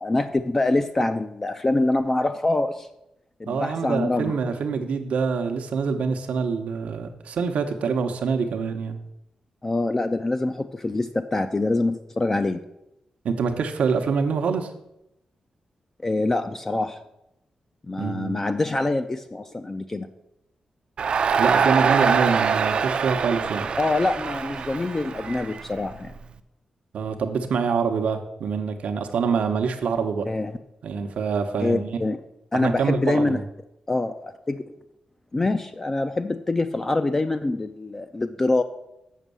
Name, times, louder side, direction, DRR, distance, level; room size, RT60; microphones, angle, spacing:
voice 1, 0.0-2.9 3.4-4.4 9.6-12.6 16.0-17.0 17.9-20.1 23.8-26.1 30.3-30.5 31.6-32.2 32.5-33.4 33.9-34.6 35.3-38.6, left 2 dB, 20° left, 8 dB, 0.3 m, -25 dB
voice 2, 3.5-9.0 13.2-14.7 18.0-18.4 21.4-23.7 26.9-30.3 30.8-32.0 32.5-33.4, right 5 dB, 85° right, 5 dB, 0.8 m, -25 dB
Crowd, 21.0-26.2, right 6 dB, 50° right, 0.5 m, -24 dB
7.4 x 6.2 x 6.8 m, 0.86 s
wide cardioid pair, 175°, 2 cm